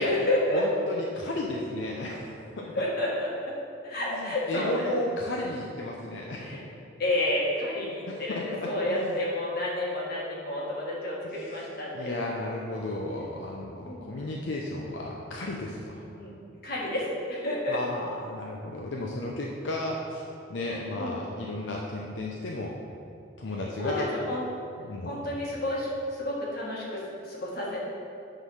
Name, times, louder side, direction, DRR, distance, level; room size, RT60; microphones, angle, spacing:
voice 1, 0.0-0.6 2.7-3.5 3.8-5.1 6.4-6.7 7.0-12.2 13.9-14.3 16.2-16.3 16.6-17.8 20.6-21.3 23.8-24.4 25.1-27.9, left 1 dB, 55° left, -4 dB, 1.8 m, -30 dB
voice 2, 0.5-2.7 4.1-6.5 7.8-7.9 8.3-9.2 11.2-11.3 11.9-16.0 17.7-20.2 20.5-22.8 23.4-24.1 24.8-25.2, left 2 dB, 80° left, -2 dB, 0.7 m, -34 dB
9.0 x 3.9 x 5.6 m, 2.6 s
head